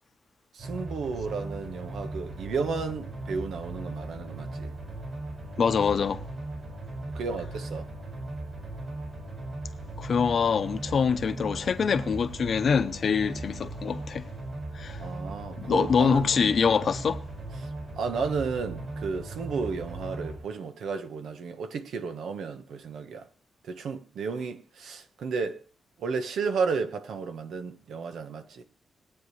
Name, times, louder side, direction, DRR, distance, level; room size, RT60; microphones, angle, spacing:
voice 1, 0.5-4.7 7.1-7.9 15.0-16.3 17.6-17.7 18.0-23.3 23.6-25.6 26.0-28.6, right 5 dB, 85° right, 1.3 m, -33 dB
sound 1, 0.6-20.4, right 2 dB, 50° right, 6.6 m, -38 dB
voice 2, 5.6-6.2 10.0-14.3 14.7-15.0 15.6-17.2, left 6 dB, 45° left, 0.8 m, -25 dB
22.0 x 9.0 x 3.2 m
wide cardioid pair, 165°, 0 cm